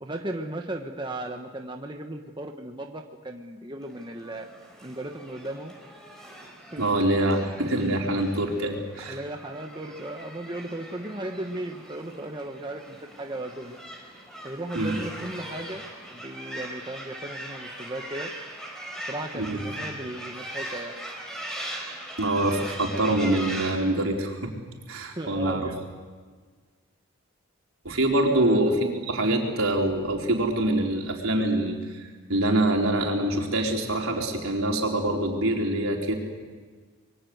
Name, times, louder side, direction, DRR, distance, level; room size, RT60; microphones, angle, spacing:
voice 1, 0.0-4.5 4.8-5.7 6.7-6.8 9.1-13.8 14.4-15.8 16.1-18.3 19.1-21.0 25.1-25.8 28.3-28.8, right 1 dB, 20° right, 3 dB, 1.3 m, -36 dB
sound 1, 3.8-23.7, right 1 dB, 5° left, 5.1 m, -40 dB
voice 2, 6.8-9.2 14.8-15.0 19.3-19.6 22.2-24.5 24.9-25.7 27.8-32.0 32.3-36.1, right 1 dB, 75° right, 0 dB, 4.5 m, -25 dB
26.0 x 23.0 x 8.1 m, 1.5 s
head